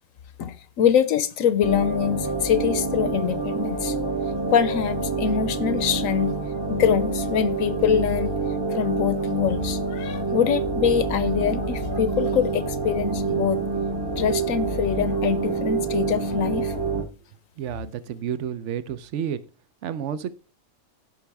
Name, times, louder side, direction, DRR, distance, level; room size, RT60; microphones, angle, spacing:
voice 1, 0.4-4.0 4.5-6.4 6.7-8.3 8.7-13.6 14.2-16.7, left 8 dB, 75° left, 1.1 m, -24 dB
sound 1, 1.6-17.0, right 4 dB, 20° right, 1.1 m, -27 dB
voice 2, 17.6-19.4 19.8-20.3, right 9 dB, 60° right, 1.0 m, -30 dB
15.0 x 5.8 x 3.5 m
omnidirectional pair, 1.5 m